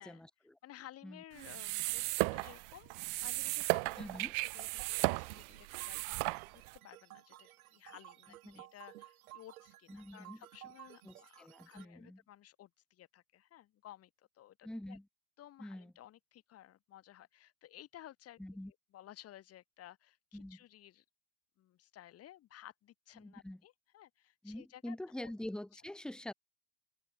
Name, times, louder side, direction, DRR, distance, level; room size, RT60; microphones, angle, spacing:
voice 1, 0.0-0.5 1.0-1.2 4.0-4.3 8.4-8.6 9.9-10.4 11.0-12.2 14.6-15.0 15.6-15.9 18.4-18.7 20.3-20.6 23.2-23.6 24.4-26.3, left 1 dB, ahead, 1.5 m, -45 dB
voice 2, 0.6-4.1 4.5-14.1 14.4-15.0 15.4-18.4 18.7-21.0 21.6-25.0 25.2-25.3, left 13 dB, 35° left, 1.7 m, -56 dB
sound 1, 1.4-6.8, right 40 dB or more, 45° right, 0.5 m, -35 dB
sound 2, 3.9-11.8, right 15 dB, 70° right, 1.5 m, -56 dB
hypercardioid pair, 95°, 44 cm